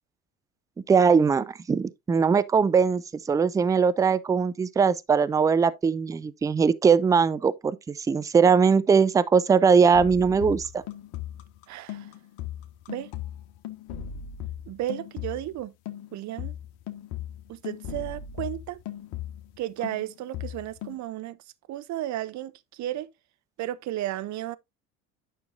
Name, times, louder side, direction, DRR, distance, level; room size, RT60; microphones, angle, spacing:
voice 1, 0.9-3.0 3.3-10.8, right 6 dB, 10° right, 0.4 m, -21 dB
sound 1, 9.9-15.6 15.9-19.6 19.8-21.0, left 10 dB, 60° left, 1.4 m, -38 dB
voice 2, 11.7-12.1 12.9-13.1 14.7-15.7 16.1-16.5 17.5-18.8 19.6-21.4 21.7-23.1 23.6-24.6, right 14 dB, 40° right, 0.8 m, -33 dB
9.5 x 6.4 x 2.6 m
hypercardioid pair, 75°, 43 cm